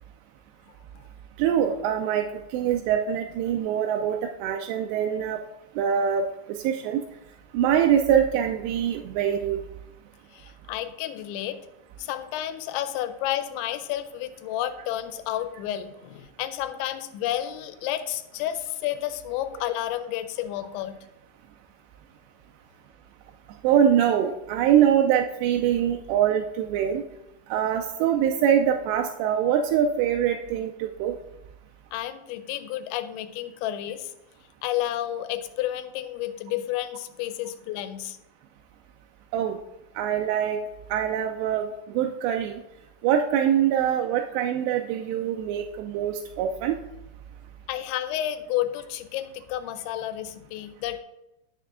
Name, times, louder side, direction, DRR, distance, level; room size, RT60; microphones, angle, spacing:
voice 1, 1.4-5.4 5.8-7.0 7.5-9.6 23.6-27.0 27.5-31.2 39.3-39.6 40.0-40.6 40.9-42.6 43.0-46.8, right 9 dB, 85° right, 4 dB, 2.6 m, -24 dB
voice 2, 10.3-11.6 12.0-21.0 31.9-34.1 34.6-38.2 47.7-51.0, left 12 dB, 90° left, 10 dB, 2.9 m, -31 dB
9.0 x 6.7 x 3.6 m, 0.92 s
omnidirectional pair, 5.2 m